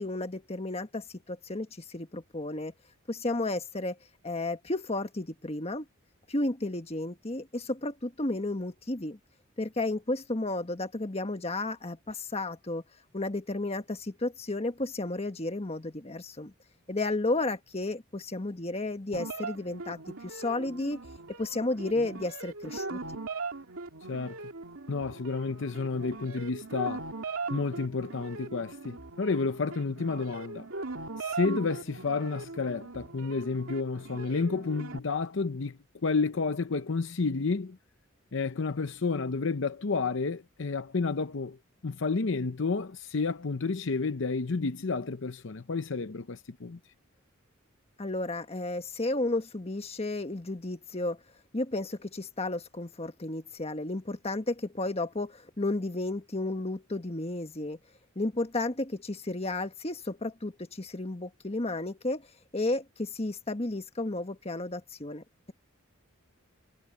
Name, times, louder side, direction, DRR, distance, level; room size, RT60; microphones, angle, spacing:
voice 1, 0.0-2.7 3.1-4.0 4.2-5.8 6.3-9.2 9.6-12.8 13.1-16.5 16.9-21.0 21.4-23.0 48.0-51.2 51.5-57.8 58.1-62.3 62.5-65.5, left 2 dB, 30° left, 1.5 m, -33 dB
sound 1, 19.1-35.0, right 3 dB, 80° right, 2.4 m, -40 dB
voice 2, 24.9-27.0 27.5-30.7 31.2-37.8 38.3-41.6 41.8-46.8, left 4 dB, 60° left, 0.7 m, -31 dB
head